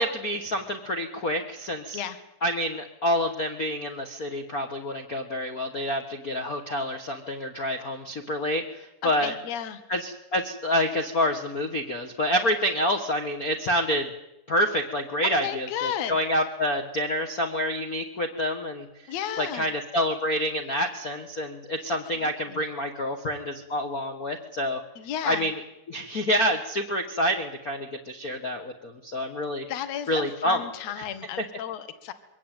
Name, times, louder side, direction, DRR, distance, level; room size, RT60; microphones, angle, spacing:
voice 1, 0.0-2.0 2.4-9.3 9.9-14.1 14.5-18.9 19.4-24.8 25.2-25.6 25.9-29.7 30.1-30.6, equal, 80° left, 5 dB, 0.8 m, -27 dB
voice 2, 9.0-9.8 15.4-16.4 19.1-19.7 22.1-22.7 25.0-25.5 29.7-32.1, left 9 dB, 55° left, 10 dB, 2.5 m, -34 dB
23.0 x 17.0 x 9.1 m, 0.89 s
omnidirectional pair, 4.0 m